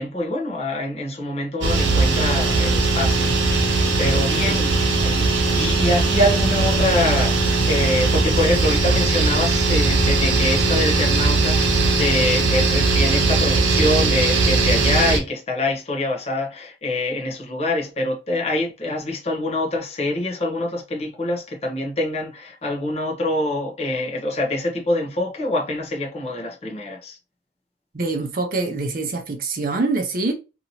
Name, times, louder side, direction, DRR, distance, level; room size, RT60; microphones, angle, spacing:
voice 1, 0.0-27.2, left 1 dB, 35° left, 0.7 m, -25 dB
sound 1, 1.6-15.2, right 3 dB, 85° right, 0.8 m, -19 dB
voice 2, 4.1-4.6 27.9-30.3, right 3 dB, 50° right, 0.6 m, -25 dB
2.8 x 2.6 x 2.7 m
head